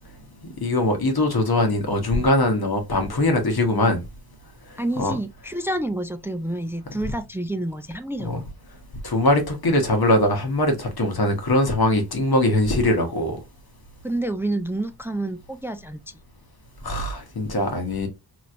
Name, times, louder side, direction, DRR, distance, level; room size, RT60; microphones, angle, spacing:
voice 1, 0.6-4.1 5.0-5.1 8.2-8.4 9.0-13.4 16.8-18.1, left 1 dB, 65° left, 1.1 m, -21 dB
voice 2, 4.8-8.5 14.0-16.0, right 1 dB, 5° right, 0.3 m, -28 dB
3.0 x 3.0 x 2.5 m
wide cardioid pair, 45°, 40 cm